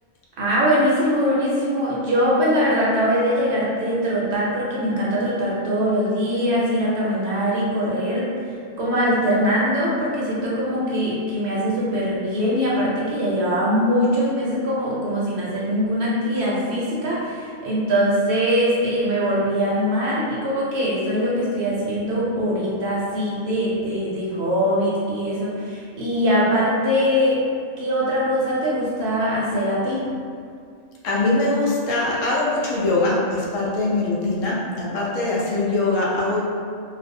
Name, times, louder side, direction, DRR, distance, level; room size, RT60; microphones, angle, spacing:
voice 1, 0.4-8.3 8.8-27.4 27.8-30.1, equal, 65° right, -6 dB, 0.8 m, -22 dB
voice 2, 31.0-36.4, left 2 dB, 80° left, -5 dB, 0.9 m, -22 dB
2.5 x 2.0 x 2.6 m, 2.2 s
omnidirectional pair, 1.3 m